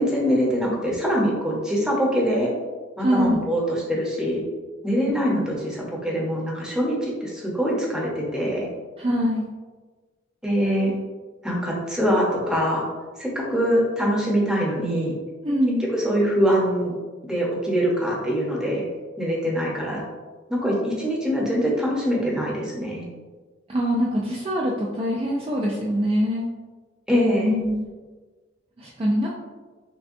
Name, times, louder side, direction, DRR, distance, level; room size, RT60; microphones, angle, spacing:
voice 1, 0.0-2.5 3.0-4.4 4.8-8.7 10.4-10.9 11.4-12.9 13.2-15.1 15.9-16.9 17.3-18.8 19.2-20.0 20.5-23.1 27.1-27.5, equal, 5° right, -4 dB, 0.8 m, -23 dB
voice 2, 3.0-3.4 9.0-9.5 15.4-15.9 23.7-26.5 27.4-27.9 28.8-29.3, equal, 30° right, -3 dB, 0.4 m, -23 dB
5.9 x 2.3 x 2.6 m, 1.3 s
head